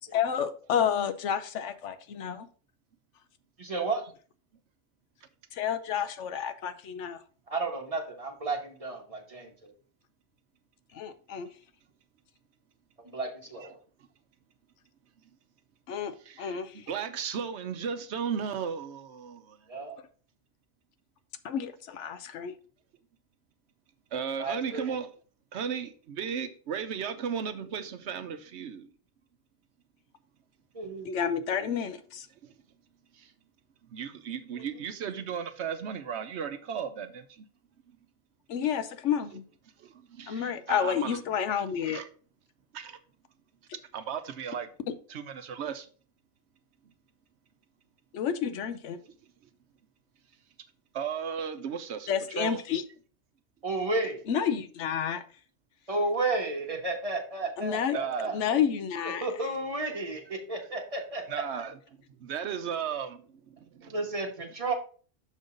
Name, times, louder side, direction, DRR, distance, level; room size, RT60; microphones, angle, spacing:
voice 1, 0.1-2.5 5.5-7.2 10.9-11.5 15.9-16.7 21.4-22.5 31.1-32.3 38.5-39.4 40.3-42.0 48.1-49.0 52.1-52.8 54.3-55.2 57.6-58.0 58.3-59.3, left 8 dB, 80° left, 1.0 m, -30 dB
voice 2, 3.6-4.0 7.5-9.7 13.0-13.8 19.7-20.0 24.4-24.9 30.7-31.7 34.6-34.7 53.6-54.2 55.9-58.6 59.2-61.4 63.9-64.7, right 2 dB, 30° right, 1.4 m, -33 dB
voice 3, 16.2-19.6 24.1-25.1 25.5-28.9 32.4-32.5 33.1-33.3 33.9-37.5 39.3-39.4 39.8-41.2 41.8-42.1 42.7-43.0 43.9-44.7 45.1-45.9 50.9-52.6 57.9-58.4 61.3-61.8 62.2-63.9, right 7 dB, 70° right, 0.9 m, -35 dB
6.4 x 5.3 x 3.8 m
omnidirectional pair, 1.2 m